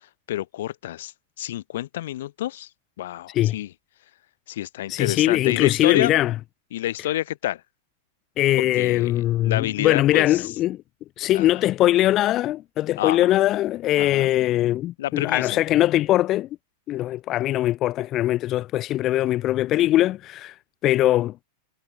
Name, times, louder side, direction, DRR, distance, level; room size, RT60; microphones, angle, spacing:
voice 1, 0.3-1.1 1.4-2.7 3.0-3.7 4.5-6.1 6.7-7.6 8.8-10.4 11.3-11.6 13.0-13.4 14.0-14.3 15.0-15.6, left 14 dB, 70° left, 4.5 m, -28 dB
voice 2, 4.9-6.3 8.4-10.8 11.2-16.5 16.9-20.5 20.8-21.4, left 14 dB, 35° left, 2.5 m, -21 dB
hypercardioid pair, 120°, 0 cm